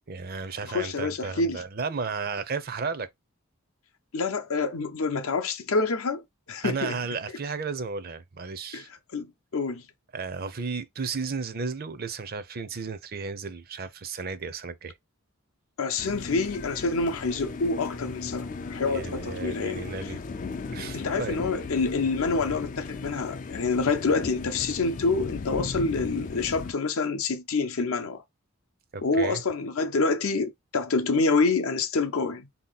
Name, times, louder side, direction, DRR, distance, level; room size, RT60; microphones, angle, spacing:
voice 1, 0.1-3.1 6.6-8.9 10.1-14.9 18.9-20.2 20.7-21.4 28.9-29.4, right 4 dB, 40° right, 0.5 m, -33 dB
voice 2, 0.6-1.6 4.1-6.2 6.5-7.0 8.7-8.8 9.1-9.8 15.8-20.1 20.9-28.2 29.0-32.5, left 3 dB, 70° left, 0.6 m, -27 dB
sound 1, 16.0-26.7, left 4 dB, 35° left, 0.3 m, -36 dB
3.9 x 2.9 x 3.9 m
head